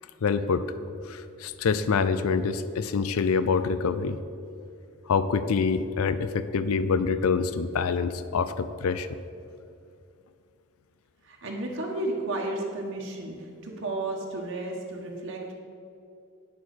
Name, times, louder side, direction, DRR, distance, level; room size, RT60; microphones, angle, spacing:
voice 1, 0.2-0.7 1.1-4.2 5.1-9.1, left 5 dB, 85° left, 13 dB, 0.5 m, -26 dB
voice 2, 11.2-15.5, right 2 dB, 60° right, -1 dB, 1.2 m, -33 dB
9.2 x 6.2 x 6.5 m, 2.5 s
head